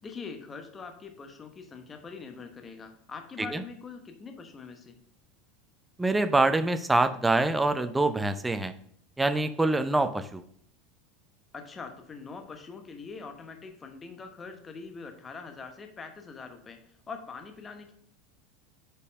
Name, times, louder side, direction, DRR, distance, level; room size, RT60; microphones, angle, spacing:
voice 1, 0.0-5.0 11.5-17.9, left 5 dB, 25° left, 5 dB, 1.1 m, -43 dB
voice 2, 6.0-8.7 9.2-10.4, right 2 dB, 10° right, 10 dB, 0.5 m, -25 dB
5.4 x 4.2 x 5.3 m, 0.67 s
figure-of-eight pair, 80°, 0 cm